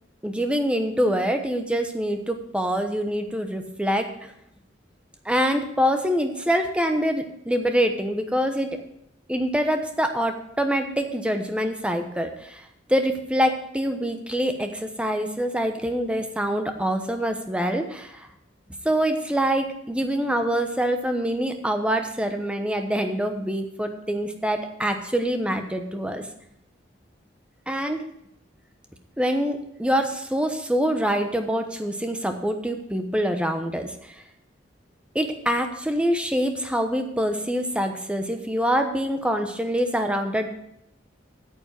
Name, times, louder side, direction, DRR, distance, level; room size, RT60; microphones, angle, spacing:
voice 1, 0.2-4.1 5.2-8.8 9.3-12.6 12.9-18.3 18.8-26.3 27.7-28.1 29.2-34.1 35.1-40.5, equal, 5° right, 5 dB, 1.0 m, -25 dB
9.0 x 7.9 x 5.9 m, 0.77 s
head